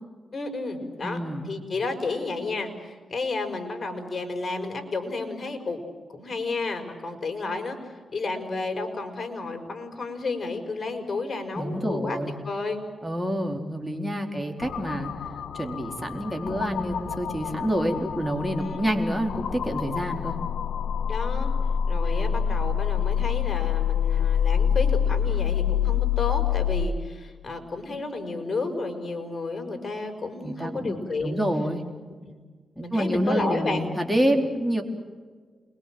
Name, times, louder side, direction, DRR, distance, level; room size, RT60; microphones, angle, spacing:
voice 1, 0.3-1.2 1.4-5.8 6.1-7.8 8.1-12.2 12.4-12.8 14.3-14.5 18.6-18.8 21.1-21.5 21.9-31.5 32.3-32.4 32.8-33.8, left 3 dB, 40° left, 5 dB, 5.8 m, -31 dB
voice 2, 1.0-1.5 11.6-12.3 13.0-15.1 15.5-20.4 30.4-30.9 31.2-31.8 32.8-34.8, equal, 10° right, 2 dB, 4.1 m, -27 dB
sound 1, 14.6-26.9, left 8 dB, 80° left, 1.8 m, -27 dB
29.5 x 22.0 x 7.8 m, 1.5 s
cardioid pair, 65°, 0 cm